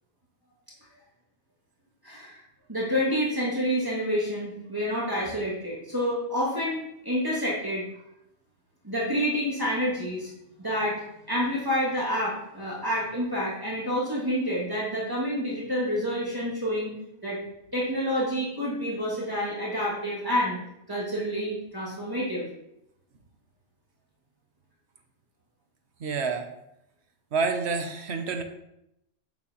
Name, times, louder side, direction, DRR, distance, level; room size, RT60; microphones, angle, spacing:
voice 1, 2.0-2.4 2.7-7.8 8.8-10.3 10.6-16.9 17.2-17.4 17.7-20.6 20.9-22.5, equal, 20° right, -8 dB, 2.6 m, -28 dB
voice 2, 26.0-26.5 27.3-28.4, right 4 dB, 65° right, 6 dB, 1.2 m, -28 dB
8.3 x 7.5 x 3.1 m, 0.83 s
omnidirectional pair, 1.2 m